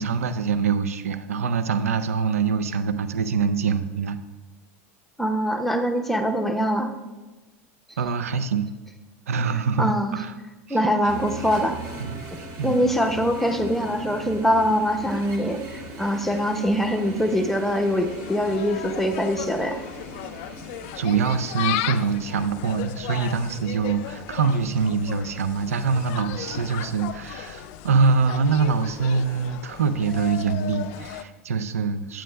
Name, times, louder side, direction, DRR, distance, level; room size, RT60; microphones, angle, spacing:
voice 1, 0.0-4.2 8.0-8.7 9.3-10.3 10.7-10.8 12.0-12.2 12.6-12.9 20.9-32.2, right 5 dB, 85° right, 12 dB, 0.4 m, -24 dB
voice 2, 5.2-6.9 9.8-10.2 10.7-11.8 12.6-19.8, equal, 5° left, 4 dB, 0.8 m, -23 dB
sound 1, 11.0-21.5, right 2 dB, 45° right, 1.8 m, -39 dB
Insect, 17.4-31.2, left 11 dB, 60° left, 0.4 m, -35 dB
9.0 x 8.8 x 2.2 m, 1.2 s
hypercardioid pair, 90°, 8 cm